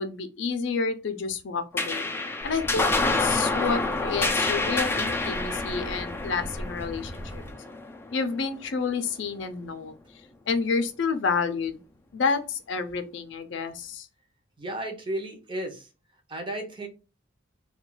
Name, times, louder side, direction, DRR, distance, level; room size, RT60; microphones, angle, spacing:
voice 1, 0.0-2.1 2.4-7.4 8.1-9.9 10.5-11.8 12.1-14.1, left 5 dB, 70° left, 0.5 m, -29 dB
sound 1, 1.8-8.5, left 3 dB, 10° left, 0.3 m, -28 dB
sound 2, 2.4-7.5, equal, 60° right, 1.2 m, -40 dB
voice 2, 14.6-15.9 16.3-16.9, right 1 dB, 25° right, 0.6 m, -34 dB
2.3 x 2.3 x 3.7 m
head